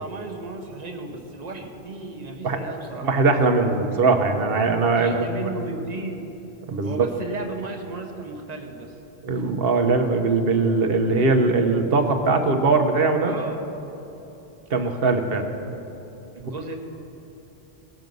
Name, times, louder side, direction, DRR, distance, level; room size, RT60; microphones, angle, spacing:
voice 1, 0.0-3.1 4.9-6.2 6.8-8.9 13.2-13.6 16.3-16.7, right 3 dB, 40° right, 3 dB, 1.1 m, -34 dB
voice 2, 3.0-5.3 6.7-7.1 9.2-13.3 14.7-15.4 16.4-16.5, right 3 dB, 60° right, 5 dB, 1.1 m, -21 dB
18.0 x 6.3 x 5.3 m, 3.0 s
omnidirectional pair, 1.1 m